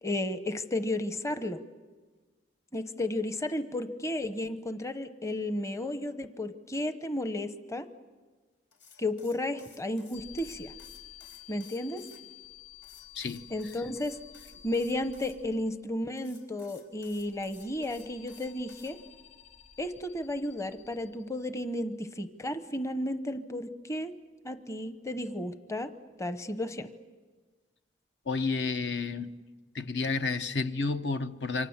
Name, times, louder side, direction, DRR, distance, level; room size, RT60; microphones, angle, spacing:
voice 1, 0.0-1.6 2.7-7.9 9.0-10.7 11.5-12.0 13.5-14.2 14.6-19.0 19.8-24.1 24.4-25.9 26.2-26.9, left 1 dB, 15° left, 0.9 m, -33 dB
sound 1, 8.7-12.2 12.8-15.4 16.2-18.9, left 5 dB, 85° left, 4.7 m, -56 dB
sound 2, 10.1-16.0 16.8-21.8, left 10 dB, 40° left, 6.5 m, -52 dB
voice 2, 28.3-29.3 29.7-31.7, left 4 dB, 70° left, 0.9 m, -31 dB
28.5 x 25.5 x 7.2 m
head